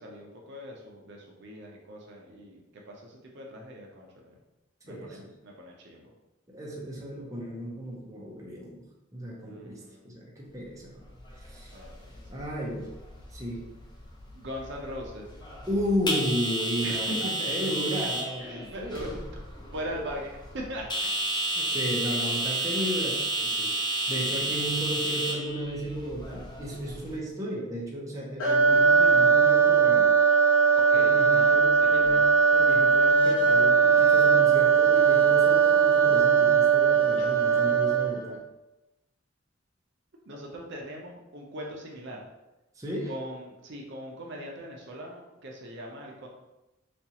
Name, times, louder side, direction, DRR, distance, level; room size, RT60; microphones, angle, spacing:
voice 1, 0.0-4.4 4.8-6.1 9.4-10.0 11.7-12.2 14.3-15.3 16.8-17.5 18.4-19.1 19.7-20.9 30.7-32.2 37.2-37.3 40.3-42.2 43.1-46.3, equal, 60° right, -1 dB, 0.6 m, -40 dB
voice 2, 4.9-5.3 6.5-8.9 9.1-11.1 11.4-11.7 12.3-12.9 13.3-13.7 15.7-19.2 21.5-30.1 30.9-38.4 42.8-43.1, equal, 15° right, -4 dB, 0.6 m, -34 dB
sound 1, 11.0-27.2, right 2 dB, 20° left, 0.5 m, -32 dB
sound 2, 28.4-38.3, right 6 dB, 65° left, 0.9 m, -20 dB
4.2 x 2.4 x 2.8 m, 0.99 s
head